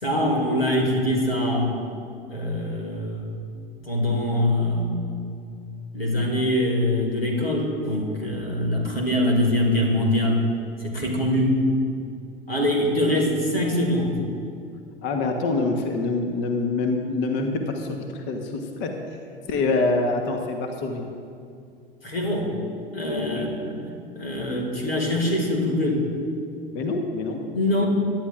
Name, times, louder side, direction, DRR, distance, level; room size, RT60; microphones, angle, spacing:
voice 1, 0.0-1.7 2.3-3.4 3.9-5.1 5.9-10.4 10.8-11.6 12.5-14.1 22.0-22.5 22.9-23.8 24.2-26.0 27.5-27.9, left 1 dB, 85° left, 1 dB, 2.2 m, -23 dB
voice 2, 15.0-18.9 19.5-21.1 23.3-23.5 26.7-27.4 27.7-27.9, left 3 dB, 40° left, 4 dB, 1.2 m, -25 dB
22.5 x 10.5 x 2.5 m, 2.4 s
figure-of-eight pair, 85°, 29 cm